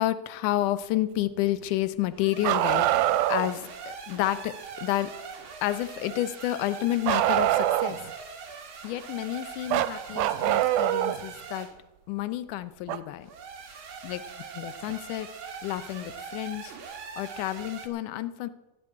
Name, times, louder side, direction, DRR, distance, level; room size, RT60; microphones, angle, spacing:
voice 1, 0.0-2.9 3.3-4.5 4.8-5.1 5.6-8.0 8.8-11.7 12.1-13.3 14.0-14.2 14.5-15.3 15.6-18.5, left 14 dB, 85° left, 14 dB, 2.2 m, -30 dB
sound 1, 2.1-11.8 13.2-17.9, right 6 dB, 50° right, 2.0 m, -42 dB
Bark, 2.4-3.5 7.1-8.1 9.7-11.2 12.9-13.0 14.9-15.0 16.1-16.2, right 13 dB, 85° right, 2.2 m, -24 dB
14.0 x 8.3 x 8.4 m, 1.0 s
omnidirectional pair, 3.6 m